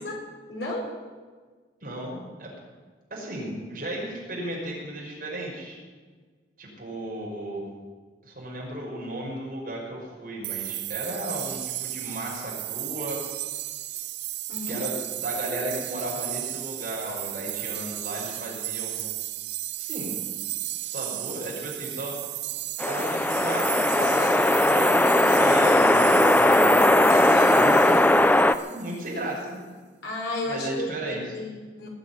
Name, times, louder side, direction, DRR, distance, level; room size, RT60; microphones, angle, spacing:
voice 1, 0.5-0.9 14.5-14.8 27.1-27.5 30.0-31.9, left 1 dB, 80° left, -2 dB, 5.2 m, -33 dB
voice 2, 1.8-2.5 3.1-5.8 6.6-7.6 8.2-13.2 14.7-19.0 19.8-20.1 20.8-22.3 22.9-26.8 27.5-27.7 28.7-29.8 30.4-31.2, right 1 dB, 50° right, -3 dB, 5.6 m, -35 dB
sound 1, 10.4-29.1, right 14 dB, 75° right, 0.7 m, -34 dB
sound 2, 22.8-28.5, left 1 dB, 10° left, 0.4 m, -19 dB
19.5 x 7.4 x 9.6 m, 1.5 s
head